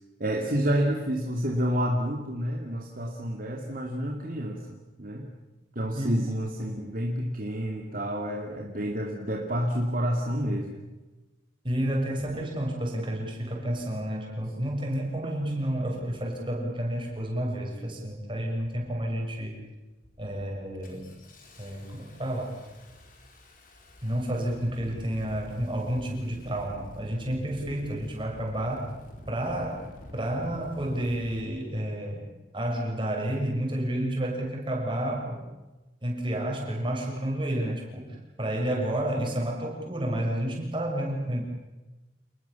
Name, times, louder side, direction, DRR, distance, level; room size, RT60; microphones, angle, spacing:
voice 1, 0.2-5.3 5.7-10.7, equal, 50° right, 1 dB, 2.8 m, -29 dB
voice 2, 11.6-19.6 20.2-21.1 21.6-22.6 24.0-28.9 29.3-32.3 32.5-35.4 36.0-41.4, right 1 dB, 25° right, 0 dB, 7.1 m, -30 dB
Engine starting, 15.1-15.2 15.9-16.2 16.9-17.2 17.6-18.1 18.6-19.1 19.5-19.7 20.0-31.4, equal, 50° left, 5.0 m, -48 dB
29.0 x 20.5 x 7.2 m, 1.1 s
head